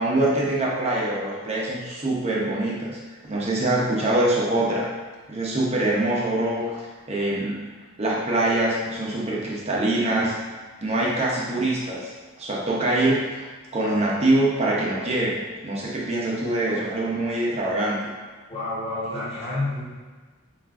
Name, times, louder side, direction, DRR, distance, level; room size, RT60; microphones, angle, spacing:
voice 1, 0.0-3.0 3.3-4.9 5.3-6.6 7.1-7.6 8.0-10.6 10.8-12.1 12.4-13.3 13.7-18.0, right 1 dB, 30° right, -5 dB, 0.6 m, -24 dB
voice 2, 18.5-19.8, left 2 dB, 25° left, -10 dB, 1.4 m, -29 dB
5.7 x 2.5 x 2.4 m, 1.4 s
head